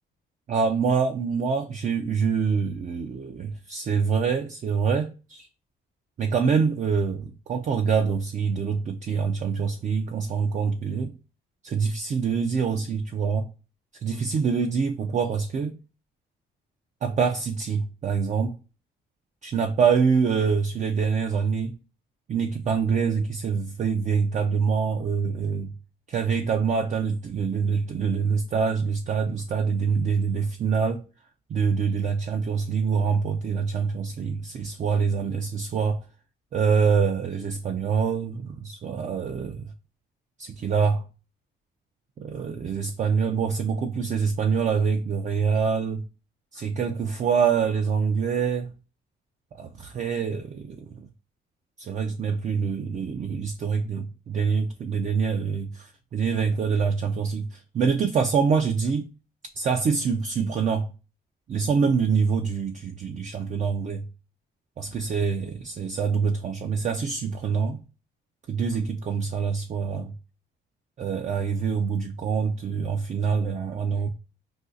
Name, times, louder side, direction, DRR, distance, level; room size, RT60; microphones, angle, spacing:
voice 1, 0.5-5.5 6.2-11.2 11.6-13.5 14.0-15.8 17.0-18.6 19.4-21.8 22.3-25.7 26.1-31.0 31.5-36.0 36.5-39.7 40.4-41.0 42.2-46.0 46.5-48.7 49.5-51.1 51.8-59.1 59.6-60.9 61.5-64.1 64.8-67.8 68.5-70.1 71.0-74.1, right 6 dB, 40° right, 0.4 m, -25 dB
2.5 x 2.3 x 3.7 m
cardioid pair, 90°, 20 cm